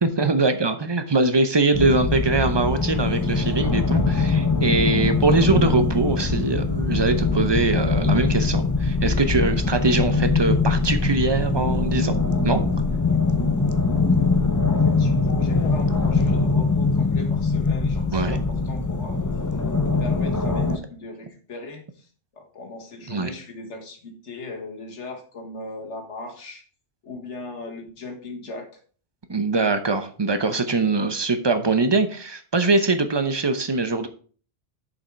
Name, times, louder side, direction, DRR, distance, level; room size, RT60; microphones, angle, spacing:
voice 1, 0.0-12.2 12.4-12.6 18.1-18.4 23.1-23.3 29.3-34.1, right 3 dB, 25° right, 8 dB, 0.7 m, -22 dB
sound 1, 1.7-20.8, left 4 dB, 30° left, 0.3 m, -22 dB
voice 2, 14.7-19.2 20.0-22.1 22.3-26.7 27.0-28.7, left 3 dB, 80° left, 2 dB, 1.9 m, -38 dB
7.0 x 5.4 x 4.6 m, 0.43 s
omnidirectional pair, 1.2 m